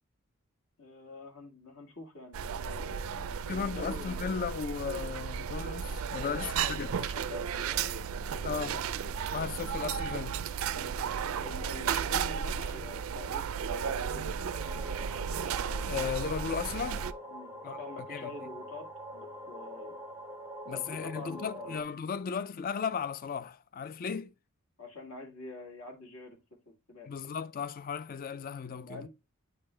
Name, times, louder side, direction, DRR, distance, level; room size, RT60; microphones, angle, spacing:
voice 1, 0.8-4.4 6.1-7.9 8.2-8.8 10.7-11.1 11.4-14.9 17.3-20.0 20.6-21.8 24.8-27.1 28.8-29.1, left 3 dB, 65° left, 1.7 m, -46 dB
sound 1, 2.3-17.1, right 7 dB, 65° right, 0.4 m, -34 dB
voice 2, 3.5-6.9 8.4-8.8 9.3-10.4 15.8-17.1 17.6-18.3 20.7-24.3 27.1-29.1, left 6 dB, 40° left, 0.3 m, -36 dB
sound 2, 4.2-10.6, right 1 dB, 85° left, 2.8 m, -54 dB
sound 3, 14.5-21.8, right 1 dB, 10° right, 0.6 m, -44 dB
8.7 x 3.7 x 3.2 m
head